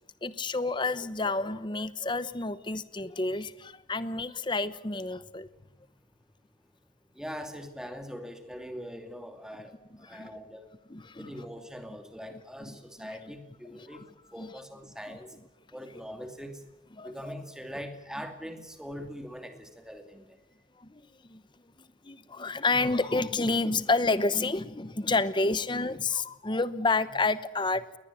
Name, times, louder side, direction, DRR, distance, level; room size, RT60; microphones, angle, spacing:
voice 1, 0.2-5.5 10.1-10.3 10.9-11.3 14.4-14.5 17.0-17.1 20.8-21.0 21.3-21.4 22.0-28.0, left 3 dB, 25° left, 15 dB, 0.9 m, -29 dB
voice 2, 7.2-9.7 10.0-10.7 11.2-14.0 14.3-15.3 15.7-16.6 17.0-20.3, equal, 5° right, 6 dB, 2.5 m, -42 dB
21.5 x 20.0 x 8.6 m, 0.98 s
head